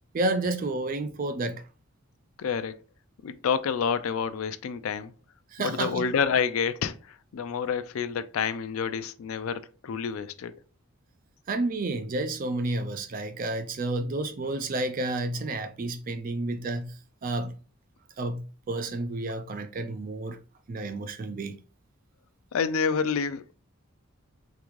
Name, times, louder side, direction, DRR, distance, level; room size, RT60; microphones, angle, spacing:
voice 1, 0.1-1.6 5.5-6.1 11.5-17.5 18.2-20.4 20.7-21.6, right 2 dB, 40° right, 0.4 m, -30 dB
voice 2, 2.4-2.8 3.2-5.1 5.6-10.6 22.5-23.5, left 6 dB, 75° left, 0.4 m, -28 dB
3.7 x 3.4 x 3.1 m
head